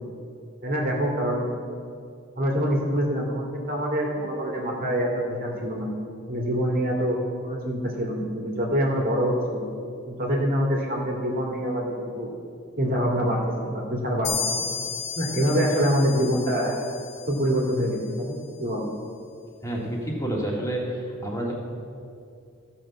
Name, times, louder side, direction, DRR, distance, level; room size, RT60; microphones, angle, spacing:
voice 1, 0.6-1.5 2.4-5.9 6.3-7.2 7.4-9.6 10.1-12.3 12.8-14.3 15.1-16.8 17.3-18.9, equal, 45° right, -1 dB, 2.1 m, -25 dB
sound 1, 14.2-17.8, left 6 dB, 45° left, 1.6 m, -33 dB
voice 2, 19.6-21.6, right 1 dB, 15° left, -2 dB, 1.9 m, -29 dB
15.0 x 5.8 x 7.3 m, 2.5 s
head